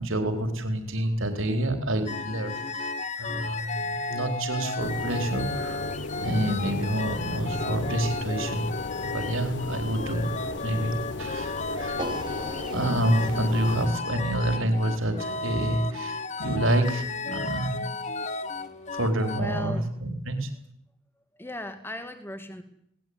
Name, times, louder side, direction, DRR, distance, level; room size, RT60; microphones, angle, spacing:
voice 1, 0.0-2.9 3.2-5.8 6.2-10.3 10.6-12.1 12.7-17.8 18.9-20.5, right 1 dB, 70° right, 7 dB, 4.3 m, -28 dB
sound 1, 2.0-19.4, left 3 dB, 35° left, 1.1 m, -34 dB
sound 2, 4.8-13.9, left 3 dB, 55° left, 1.0 m, -35 dB
sound 3, 12.0-18.2, right 2 dB, 20° right, 1.4 m, -42 dB
voice 2, 19.4-19.9 21.4-22.6, left 1 dB, 10° left, 8 dB, 2.4 m, -37 dB
20.5 x 19.5 x 9.7 m, 0.71 s
head